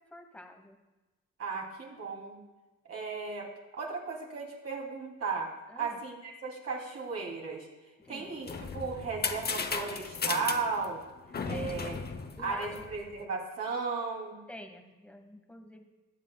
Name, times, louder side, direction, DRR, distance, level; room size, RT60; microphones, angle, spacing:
voice 1, 0.1-0.8 5.7-6.0 8.0-8.3 11.5-11.9 12.4-12.9 14.5-15.8, left 1 dB, 5° left, 5 dB, 1.2 m, -47 dB
voice 2, 1.4-2.4 2.9-7.7 8.1-11.0 11.5-12.0 12.4-14.4, right 4 dB, 55° right, -1 dB, 2.7 m, -35 dB
sound 1, 8.1-13.2, left 5 dB, 30° left, 0.8 m, -36 dB
20.0 x 8.2 x 2.3 m, 1.1 s
cardioid pair, 90°, 30 cm